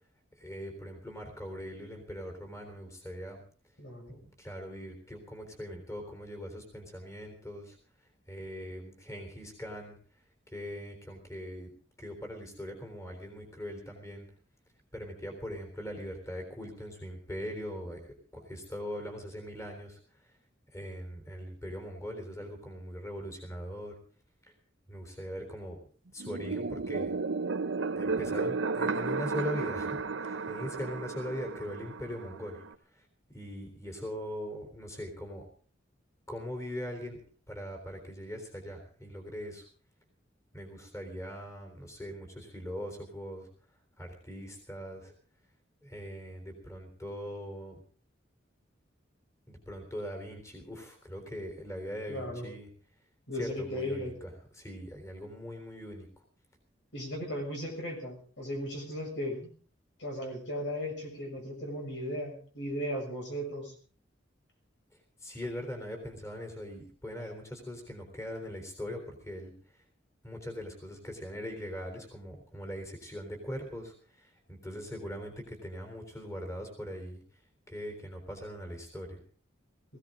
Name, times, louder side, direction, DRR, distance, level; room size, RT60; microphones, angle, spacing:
voice 1, 0.4-3.4 4.2-7.8 8.3-10.0 10.5-11.7 12.0-14.2 14.9-20.0 20.7-24.0 24.9-25.8 26.1-27.1 28.0-32.6 32.9-33.0 33.3-35.4 36.3-37.2 37.5-39.6 40.5-43.5 44.0-45.1 45.8-47.8 49.5-52.7 53.3-56.1 65.2-69.5 70.2-77.2 77.7-79.2, equal, 15° left, 3 dB, 3.8 m, -41 dB
voice 2, 3.8-4.2 52.1-52.5 53.3-54.1 56.9-59.5 60.0-63.7, equal, 65° left, 2 dB, 6.6 m, -36 dB
sound 1, 26.2-32.7, right 4 dB, 90° right, 0.8 m, -33 dB
19.5 x 16.5 x 3.8 m, 0.42 s
head